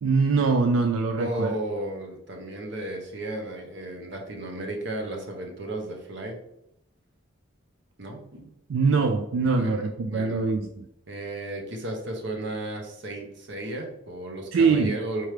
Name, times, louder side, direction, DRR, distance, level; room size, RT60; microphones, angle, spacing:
voice 1, 0.0-1.5 8.7-10.9 14.5-14.9, right 4 dB, 85° right, 6 dB, 0.4 m, -23 dB
voice 2, 1.2-6.4 8.0-8.5 9.4-10.4 11.1-15.3, right 1 dB, 60° right, 2 dB, 0.9 m, -34 dB
4.5 x 3.5 x 3.2 m, 0.81 s
head